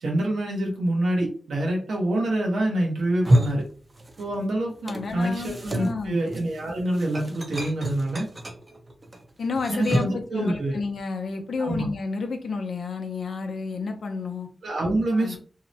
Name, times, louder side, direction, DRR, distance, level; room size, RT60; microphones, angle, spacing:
voice 1, 0.0-3.6 4.2-8.3 9.7-10.8 11.6-11.8 14.6-15.4, right 1 dB, 90° right, 0.8 m, -26 dB
sound 1, 3.0-4.4 4.7-10.3, equal, 35° right, 0.5 m, -28 dB
voice 2, 4.8-6.2 9.4-14.5 15.1-15.4, left 4 dB, 80° left, 0.5 m, -31 dB
2.7 x 2.0 x 2.7 m
cardioid pair, 65°, 0 cm